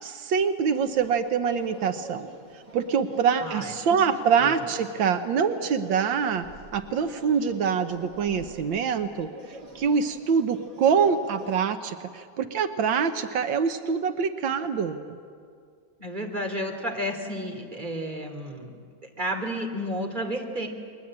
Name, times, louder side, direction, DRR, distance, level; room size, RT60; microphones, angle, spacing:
voice 1, 0.0-2.3 2.7-6.5 6.7-9.3 9.8-15.2, right 6 dB, 85° right, 8 dB, 1.7 m, -25 dB
sound 1, 0.7-11.6, right 2 dB, 60° right, 3.6 m, -47 dB
voice 2, 3.4-4.0 4.4-4.5 16.0-18.8 19.2-20.7, equal, 25° right, 3 dB, 3.0 m, -32 dB
29.5 x 22.0 x 8.8 m, 2.2 s
omnidirectional pair, 2.0 m